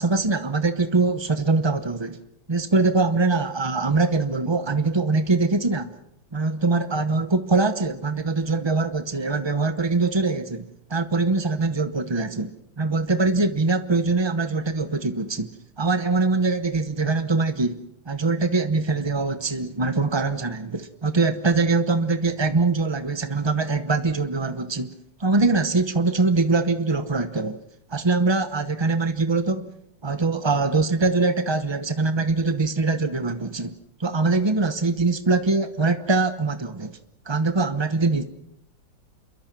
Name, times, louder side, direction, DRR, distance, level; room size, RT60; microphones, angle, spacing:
voice 1, 0.0-2.2 2.5-5.9 6.3-15.5 15.8-24.9 25.2-27.6 27.9-29.7 30.0-33.7 34.0-37.0 37.3-38.2, right 3 dB, 40° right, 9 dB, 0.3 m, -23 dB
28.5 x 22.5 x 6.1 m, 0.78 s
omnidirectional pair, 2.1 m